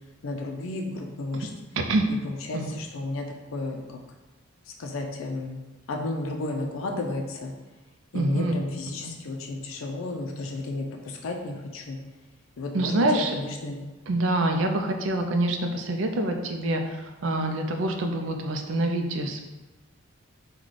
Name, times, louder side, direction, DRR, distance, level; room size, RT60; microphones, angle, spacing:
voice 1, 0.2-1.5 2.1-3.3 3.5-3.8 4.7-5.6 5.9-7.5 8.1-12.0 12.6-13.8, left 2 dB, 80° left, 2 dB, 0.4 m, -33 dB
voice 2, 1.8-2.1 2.5-2.8 8.1-8.5 9.0-9.1 12.7-13.4 14.1-19.4, right 2 dB, 70° right, 5 dB, 0.4 m, -26 dB
3.9 x 2.2 x 3.1 m, 1.2 s
head